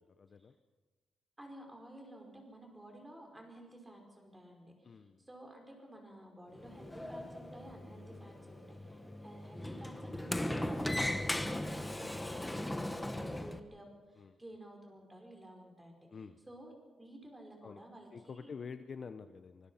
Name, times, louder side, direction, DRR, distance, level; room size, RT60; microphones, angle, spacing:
voice 1, 0.2-0.5 4.8-5.3 11.6-11.8 14.2-14.4 16.1-16.4 17.6-17.8 18.1-19.7, left 5 dB, 45° left, 10 dB, 0.8 m, -48 dB
voice 2, 1.4-16.1 16.5-16.7 17.0-18.6, right 1 dB, 10° right, 2 dB, 5.4 m, -53 dB
sound 1, 6.3-11.4, left 3 dB, 75° left, 5.4 m, -62 dB
Sliding door, 6.6-13.6, left 1 dB, 10° left, 1.2 m, -38 dB
24.5 x 21.0 x 5.7 m, 1.3 s
cardioid pair, 130°, 0 cm